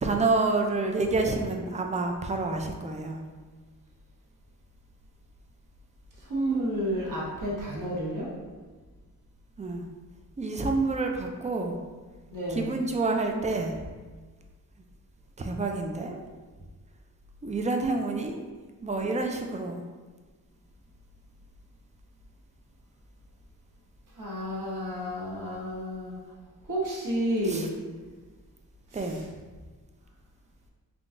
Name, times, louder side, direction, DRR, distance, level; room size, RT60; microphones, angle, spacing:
voice 1, 0.0-3.2 9.6-9.8 10.4-11.8 12.5-13.9 15.4-16.2 17.4-18.4 18.8-19.8 27.5-27.7 28.9-29.2, right 3 dB, 20° right, 3 dB, 0.3 m, -28 dB
voice 2, 6.2-8.3 12.3-12.7 24.1-26.2 26.6-27.7 28.9-29.2, right 1 dB, 70° right, -7 dB, 1.2 m, -31 dB
3.8 x 2.3 x 3.6 m, 1.4 s
wide cardioid pair, 130°, 33 cm